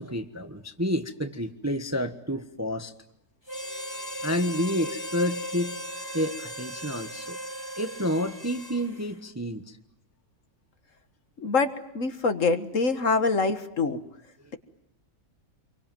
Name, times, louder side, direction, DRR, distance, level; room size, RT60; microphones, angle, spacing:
voice 1, 0.0-2.9 4.2-5.8 6.1-7.4 7.8-9.8 14.4-14.5, equal, 10° right, 7 dB, 1.1 m, -29 dB
Harmonica, 3.5-9.1, equal, 15° left, 3.0 m, -37 dB
voice 2, 11.4-14.0, left 4 dB, 50° left, 9 dB, 1.8 m, -25 dB
27.5 x 23.5 x 9.1 m, 0.78 s
omnidirectional pair, 1.7 m